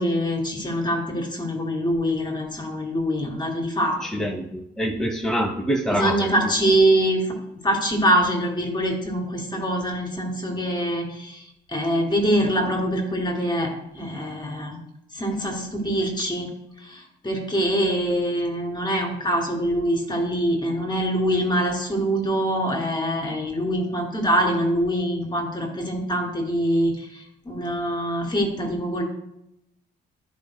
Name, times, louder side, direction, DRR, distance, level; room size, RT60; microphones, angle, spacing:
voice 1, 0.0-4.3 5.9-7.4 7.6-11.4 11.7-14.8 15.1-16.5 16.8-29.0, equal, 20° left, 1 dB, 2.5 m, -24 dB
voice 2, 4.0-6.3, equal, 5° left, 0 dB, 0.9 m, -25 dB
10.5 x 5.1 x 2.2 m, 0.80 s
cardioid pair, 90°, 20 cm